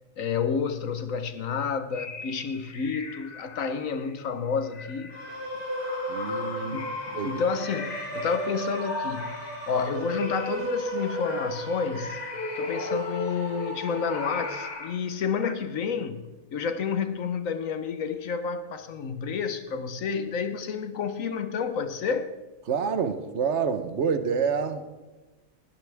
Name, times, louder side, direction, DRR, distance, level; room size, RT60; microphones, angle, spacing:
voice 1, 0.2-5.1 6.6-9.4 9.7-12.2 12.6-22.3, left 6 dB, 70° left, 1.5 m, -30 dB
sound 1, 1.9-4.2 4.6-9.9 10.1-15.5, left 4 dB, 35° left, 1.0 m, -40 dB
sound 2, 5.1-14.7, equal, 10° left, 7.3 m, -34 dB
voice 2, 6.1-6.8 7.1-7.3 22.7-24.8, right 6 dB, 55° right, 1.3 m, -27 dB
20.0 x 18.0 x 3.6 m
omnidirectional pair, 1.4 m